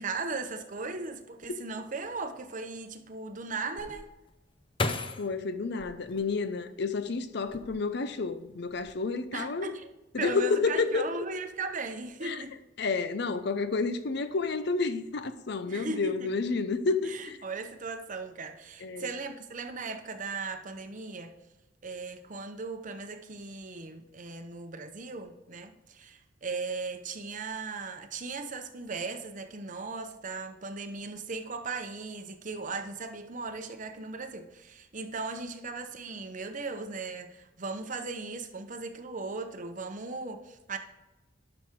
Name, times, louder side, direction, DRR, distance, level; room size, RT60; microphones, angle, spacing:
voice 1, 0.0-4.1 9.3-9.9 10.2-12.5 15.7-16.3 17.0-21.3 21.8-40.8, right 3 dB, 45° right, 0.8 m, -37 dB
sound 1, 3.8-6.9 7.4-8.1 8.5-8.9, left 3 dB, 30° left, 0.7 m, -36 dB
voice 2, 5.2-9.7 10.1-11.1 12.2-12.4 12.8-17.4 18.8-19.1, left 4 dB, 65° left, 0.6 m, -30 dB
11.5 x 6.0 x 3.7 m
head